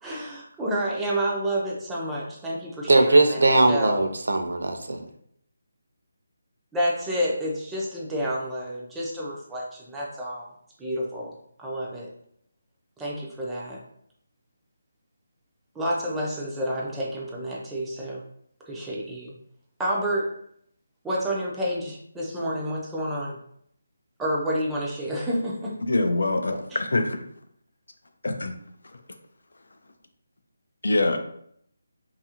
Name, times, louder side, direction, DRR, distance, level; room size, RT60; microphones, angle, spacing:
voice 1, 0.0-3.4 3.7-4.0 6.7-10.5 10.8-11.3 11.6-12.1 13.0-13.8 15.8-18.2 18.6-19.3 19.8-20.3 21.0-23.4 24.2-25.8 26.7-26.8, equal, 5° right, -4 dB, 0.4 m, -29 dB
voice 2, 2.9-5.1, right 2 dB, 75° right, 5 dB, 0.4 m, -20 dB
voice 3, 25.8-27.2 28.2-28.6 30.8-31.2, left 2 dB, 75° left, 6 dB, 0.4 m, -24 dB
2.7 x 2.4 x 2.8 m, 0.69 s
hypercardioid pair, 175°, 0 cm